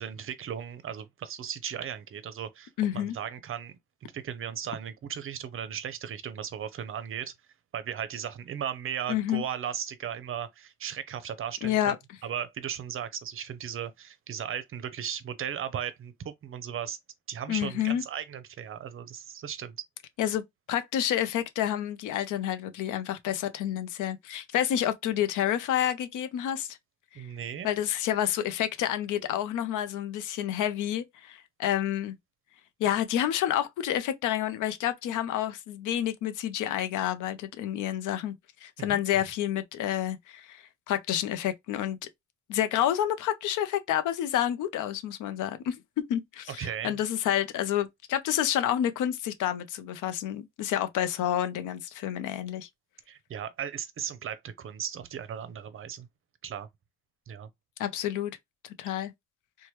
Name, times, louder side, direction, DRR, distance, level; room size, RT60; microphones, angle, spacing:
voice 1, 0.0-7.3 7.7-11.9 12.2-17.0 17.3-19.8 27.1-27.7 38.8-39.0 46.5-47.0 53.1-56.1 56.4-56.7 57.3-57.5, right 9 dB, 45° right, 0.6 m, -36 dB
voice 2, 2.8-3.2 9.1-9.4 11.6-11.9 17.5-18.0 20.2-20.4 20.7-26.8 27.1-27.3 27.6-32.1 32.8-38.3 38.6-42.0 42.5-45.7 46.1-52.7 57.8-58.3 58.6-59.1, left 11 dB, 80° left, 0.6 m, -29 dB
2.9 x 2.2 x 3.0 m
cardioid pair, 90°, 30 cm